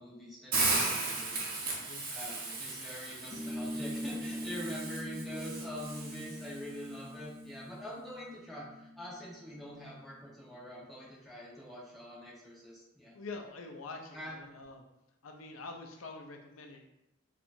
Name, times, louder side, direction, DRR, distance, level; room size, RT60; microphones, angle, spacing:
voice 1, 0.0-1.7 2.0-13.2 14.1-14.3, equal, ahead, -7 dB, 1.0 m, -45 dB
Hiss, 0.5-6.6, right 3 dB, 45° right, 0.8 m, -36 dB
sound 1, 3.3-10.3, equal, 20° left, 0.5 m, -43 dB
voice 2, 13.1-14.8 15.2-16.8, left 3 dB, 80° left, 3 dB, 0.5 m, -45 dB
4.3 x 2.4 x 2.6 m, 0.88 s
head